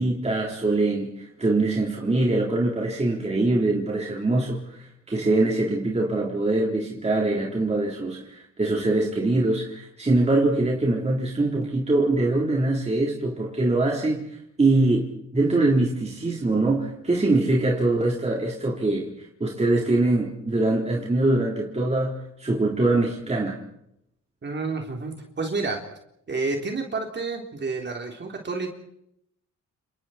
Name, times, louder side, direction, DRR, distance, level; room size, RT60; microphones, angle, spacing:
voice 1, 0.0-14.3 14.6-23.6, right 2 dB, 20° right, 4.0 m, -23 dB
voice 2, 24.4-25.8 26.3-28.7, right 3 dB, 35° right, 3.6 m, -29 dB
29.5 x 28.5 x 4.5 m
cardioid pair, 90°, 30 cm